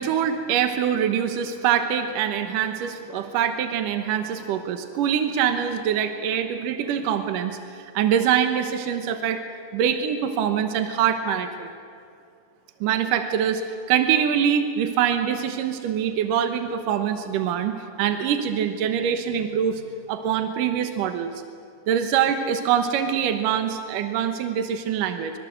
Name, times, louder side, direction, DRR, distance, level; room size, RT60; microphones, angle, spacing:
voice 1, 0.0-9.4 9.7-11.7 12.8-13.6 13.9-19.8 20.1-21.3 21.9-25.3, right 8 dB, 75° right, 7 dB, 2.7 m, -24 dB
24.5 x 23.5 x 7.8 m, 2.5 s
omnidirectional pair, 3.9 m